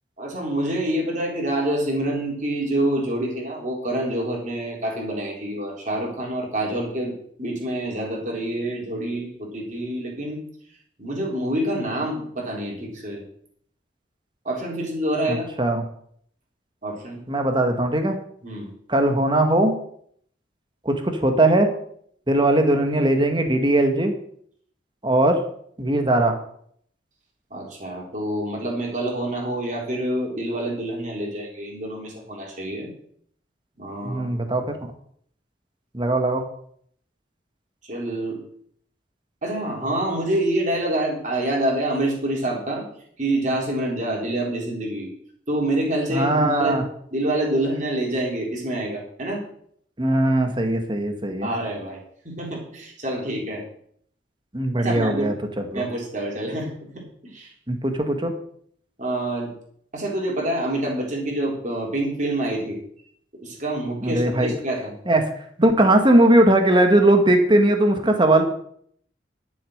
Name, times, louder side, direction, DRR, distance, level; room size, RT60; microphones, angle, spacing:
voice 1, 0.2-7.1 7.4-10.4 11.0-13.2 14.4-15.4 16.8-17.2 18.4-18.7 27.5-32.9 33.8-34.3 37.8-38.4 39.4-42.8 43.2-45.1 45.5-46.8 47.1-49.4 51.4-52.0 52.2-53.6 54.8-55.3 55.7-57.5 59.0-59.5 59.9-62.8 63.4-64.9, right 1 dB, 40° right, -2 dB, 4.0 m, -27 dB
voice 2, 15.3-15.8 17.3-18.2 18.9-19.7 20.9-21.7 22.3-24.1 25.0-25.4 25.8-26.4 34.0-34.9 35.9-36.4 46.1-46.8 50.0-51.5 54.5-55.8 57.7-58.3 64.0-64.5 65.1-65.3 65.6-68.5, right 1 dB, 25° right, 5 dB, 1.7 m, -19 dB
12.0 x 7.2 x 6.5 m, 0.64 s
head